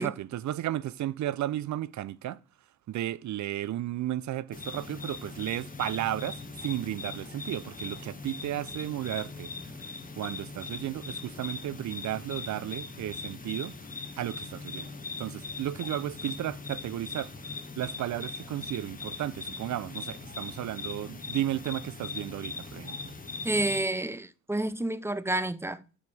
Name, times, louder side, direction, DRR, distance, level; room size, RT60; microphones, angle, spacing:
voice 1, 0.0-2.4 2.9-9.5 10.2-13.7 14.2-14.9 15.2-17.3 17.8-23.0, right 13 dB, 70° right, 0.5 m, -34 dB
sound 1, 4.5-23.8, left 4 dB, 30° left, 1.1 m, -40 dB
voice 2, 23.4-26.0, right 1 dB, 10° right, 0.5 m, -30 dB
7.4 x 4.6 x 4.7 m
cardioid pair, 70°, 30 cm